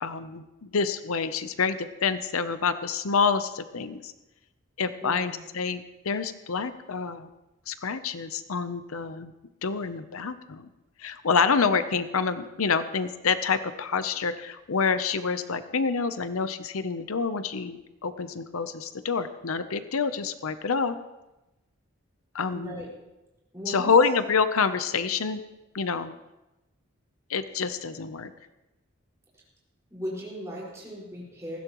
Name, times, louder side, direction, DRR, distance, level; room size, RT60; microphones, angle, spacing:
voice 1, 0.0-4.1 4.8-7.3 7.7-9.3 9.6-10.7 11.0-21.0 22.3-22.7 23.7-25.4 25.7-26.1 27.3-28.3, left 5 dB, 80° left, 11 dB, 0.7 m, -27 dB
voice 2, 5.0-5.4 22.5-22.9 23.5-23.9 29.9-31.6, equal, 15° right, -5 dB, 5.1 m, -37 dB
19.5 x 15.5 x 3.1 m, 0.98 s
head